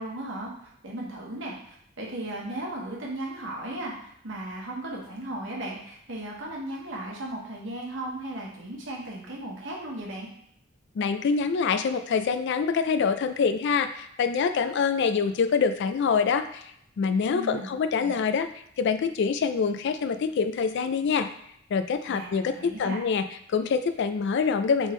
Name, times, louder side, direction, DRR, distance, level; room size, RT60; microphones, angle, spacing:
voice 1, 0.0-10.3 17.3-17.7 18.0-18.2 22.1-23.0, right 1 dB, 65° right, -2 dB, 1.2 m, -36 dB
voice 2, 11.0-16.7 17.0-18.5 18.8-21.3 21.7-23.2 23.5-24.9, left 5 dB, 60° left, 9 dB, 0.3 m, -25 dB
3.6 x 3.5 x 3.7 m, 0.74 s
head